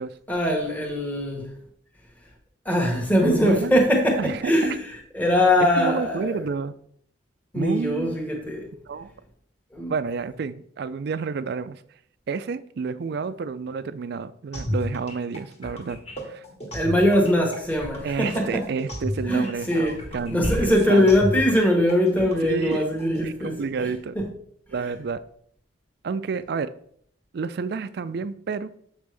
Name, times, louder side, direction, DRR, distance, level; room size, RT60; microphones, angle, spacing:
voice 1, 0.3-1.5 2.6-4.8 5.1-6.5 7.5-8.7 9.7-9.9 16.7-18.6 19.3-20.0 20.3-23.5 23.8-24.3, left 1 dB, 10° left, 1.1 m, -22 dB
voice 2, 3.3-3.7 4.2-4.5 5.8-6.7 7.5-8.2 8.9-9.1 9.9-11.8 12.3-16.4 18.0-21.1 22.4-22.8 23.2-24.2 24.7-25.2 26.0-26.7 27.3-28.7, right 5 dB, 55° right, 0.4 m, -30 dB
sound 1, 14.5-23.2, left 1 dB, 30° left, 1.3 m, -33 dB
7.3 x 5.2 x 3.3 m
head